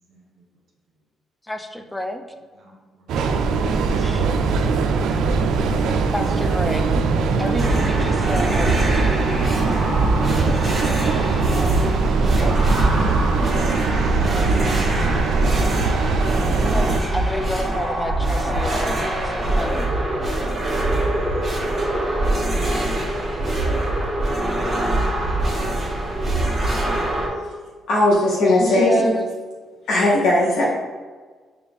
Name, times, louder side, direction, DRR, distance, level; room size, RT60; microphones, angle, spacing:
voice 1, 1.4-2.3 4.0-4.3 6.1-6.8 7.4-9.2 16.5-19.9 29.0-29.3, left 1 dB, 10° left, 6 dB, 0.4 m, -30 dB
voice 2, 2.6-3.3 13.9-15.8 20.4-21.5 25.1-25.7, right 2 dB, 55° right, 0 dB, 0.8 m, -53 dB
Train, 3.1-17.0, right 4 dB, 80° right, 0.3 m, -21 dB
sound 1, 7.6-27.3, right 1 dB, 30° right, 1.2 m, -23 dB
sound 2, 7.9-10.0 10.7-11.9, left 1 dB, 50° left, 0.9 m, -41 dB
voice 3, 27.9-29.2 29.9-30.6, left 1 dB, 80° left, -5 dB, 0.7 m, -17 dB
4.8 x 2.4 x 3.4 m, 1.4 s
cardioid pair, 90°, 0 cm